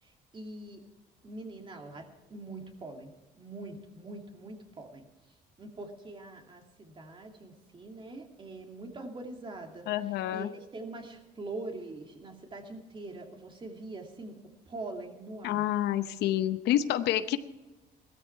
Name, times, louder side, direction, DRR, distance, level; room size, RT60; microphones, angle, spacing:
voice 1, 0.0-0.8 1.2-5.1 5.6-14.4 14.7-15.7, right 2 dB, 30° right, 3 dB, 2.5 m, -43 dB
voice 2, 9.9-10.5 15.4-17.4, left 12 dB, 80° left, 12 dB, 0.8 m, -28 dB
17.0 x 13.5 x 4.6 m, 1.1 s
cardioid pair, 110°, 17 cm